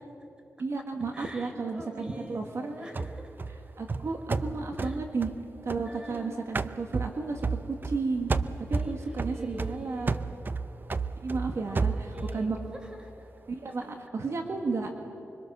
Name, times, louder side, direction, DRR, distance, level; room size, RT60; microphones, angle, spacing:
voice 1, 0.6-2.7 3.8-5.3 5.6-7.4 7.8-8.3 8.6-10.2 11.2-12.6 13.5-15.0, right 4 dB, 65° right, 3 dB, 1.9 m, -33 dB
voice 2, 1.1-3.3 4.8-5.0 5.9-6.4 8.7-10.3 11.5-13.3 13.6-13.7, equal, 15° right, 4 dB, 4.3 m, -44 dB
sound 1, 2.9-6.2 6.5-8.0 8.3-12.4, right 4 dB, 40° right, 0.7 m, -32 dB
25.5 x 24.5 x 6.8 m, 2.7 s
wide cardioid pair, 80°, 5 cm